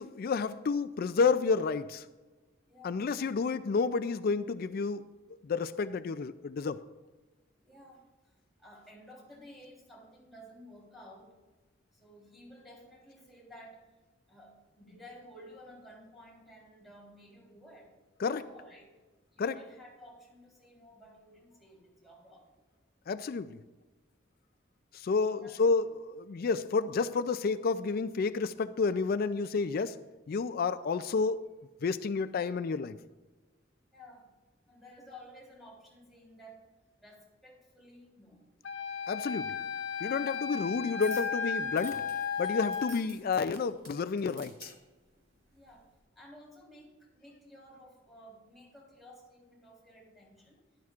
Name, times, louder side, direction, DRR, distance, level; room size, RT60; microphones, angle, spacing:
voice 1, 0.0-2.1 2.8-5.0 5.4-6.8 18.2-18.5 19.4-19.6 23.1-23.6 24.9-30.0 30.3-31.4 31.8-33.0 39.1-39.6 40.0-42.0 42.4-44.7, left 4 dB, 50° left, 13 dB, 0.4 m, -30 dB
voice 2, 2.6-3.0 7.6-11.4 11.9-13.9 14.3-17.9 18.4-18.9 19.3-22.6 25.2-25.6 33.9-34.3 34.7-38.5 40.1-40.5 45.5-45.9 46.1-50.6, equal, ahead, -4 dB, 3.5 m, -54 dB
Wind instrument woodwind instrument, 38.6-42.9, left 6 dB, 90° left, 0.9 m, -34 dB
sound 1, 41.0-41.3 41.8-44.7 45.5-45.7, right 2 dB, 75° right, 3.9 m, -50 dB
14.0 x 11.5 x 2.5 m, 1.2 s
head